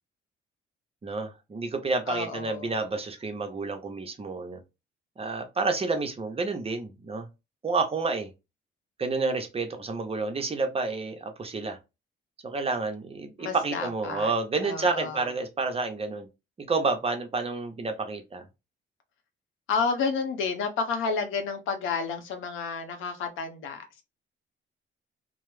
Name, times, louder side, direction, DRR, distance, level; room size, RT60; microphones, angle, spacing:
voice 1, 1.0-4.6 5.2-7.3 7.6-8.3 9.0-11.8 12.4-16.3 16.6-18.4, right 3 dB, 30° right, 0.7 m, -29 dB
voice 2, 2.1-2.8 13.4-14.3 14.6-15.3 19.7-24.0, left 5 dB, 85° left, 0.7 m, -31 dB
2.2 x 2.0 x 3.1 m
cardioid pair, 90°, 20 cm